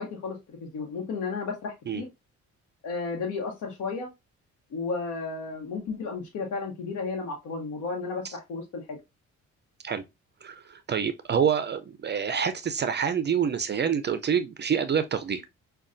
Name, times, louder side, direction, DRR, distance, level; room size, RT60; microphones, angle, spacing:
voice 1, 0.0-2.1 2.8-4.1 4.7-9.0, left 4 dB, 75° left, 1.0 m, -33 dB
voice 2, 10.4-15.4, right 7 dB, 35° right, 0.4 m, -27 dB
5.3 x 2.3 x 2.5 m
cardioid pair, 90°, 30 cm